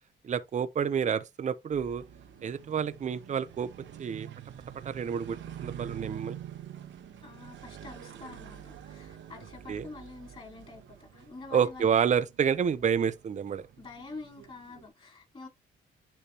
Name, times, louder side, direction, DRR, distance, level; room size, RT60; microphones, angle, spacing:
voice 1, 0.2-2.0 2.4-3.7 4.0-4.3 4.8-6.4 9.7-9.9 11.5-13.6, right 7 dB, 40° right, 0.6 m, -29 dB
sound 1, 1.7-14.9, right 10 dB, 70° right, 1.0 m, -47 dB
voice 2, 7.2-12.0 13.8-15.5, left 3 dB, 30° left, 3.7 m, -46 dB
10.0 x 3.4 x 2.9 m
cardioid pair, 90°, 20 cm